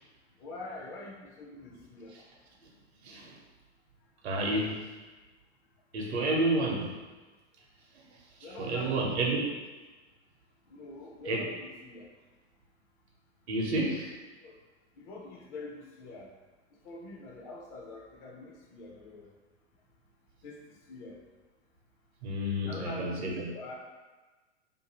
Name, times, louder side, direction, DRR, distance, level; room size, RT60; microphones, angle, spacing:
voice 1, 0.4-2.1 8.4-9.2 10.7-12.1 14.4-14.6 15.0-16.3 16.8-19.3 20.4-21.2 22.7-23.7, left 2 dB, 30° left, -1 dB, 0.5 m, -45 dB
voice 2, 3.0-3.4 4.2-4.9 5.9-6.9 8.6-9.5 11.2-11.5 13.5-14.1 22.2-23.5, right 1 dB, 65° right, 0 dB, 0.7 m, -30 dB
2.6 x 2.4 x 2.9 m, 1.3 s
figure-of-eight pair, 95°, 35 cm